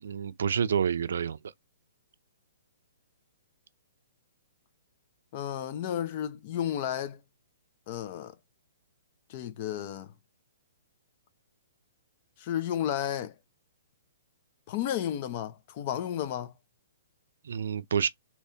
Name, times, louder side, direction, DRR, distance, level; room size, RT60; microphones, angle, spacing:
voice 1, 0.0-1.4 17.4-18.1, right 7 dB, 65° right, 0.4 m, -28 dB
voice 2, 5.3-7.2 7.9-8.3 9.3-10.1 12.4-13.3 14.7-16.5, left 10 dB, 30° left, 0.4 m, -32 dB
3.4 x 2.8 x 2.7 m
hypercardioid pair, 175°, 0 cm